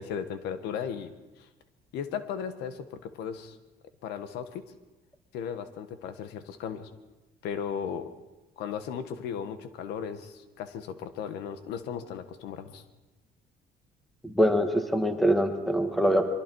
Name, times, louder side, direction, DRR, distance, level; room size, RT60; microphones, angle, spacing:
voice 1, 0.0-1.5 1.9-3.6 4.0-4.7 5.3-6.9 7.4-8.2 8.6-12.8, left 7 dB, 85° left, 10 dB, 1.5 m, -36 dB
voice 2, 14.2-16.3, equal, ahead, 6 dB, 1.8 m, -24 dB
24.0 x 23.5 x 4.7 m, 1.1 s
cardioid pair, 110°, 17 cm